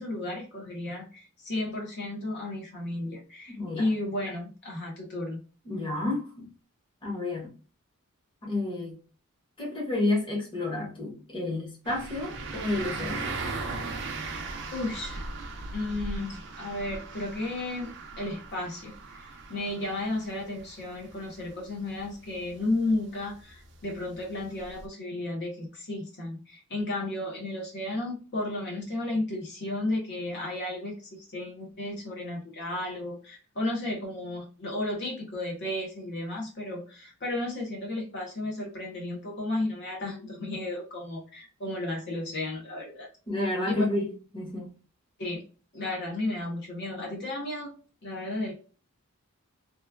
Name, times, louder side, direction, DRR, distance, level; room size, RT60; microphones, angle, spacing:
voice 1, 0.0-5.4 14.7-15.3 15.7-17.9 18.2-43.1 43.7-43.8 45.2-45.4 45.7-47.7 48.0-48.5, left 2 dB, 55° left, 1.0 m, -33 dB
voice 2, 3.5-3.8 5.7-6.5 7.0-7.5 8.4-9.0 9.6-13.2 43.3-44.7, left 2 dB, 25° left, 1.2 m, -30 dB
sound 1, 11.9-24.9, right 3 dB, 55° right, 0.6 m, -39 dB
3.0 x 2.3 x 2.2 m
head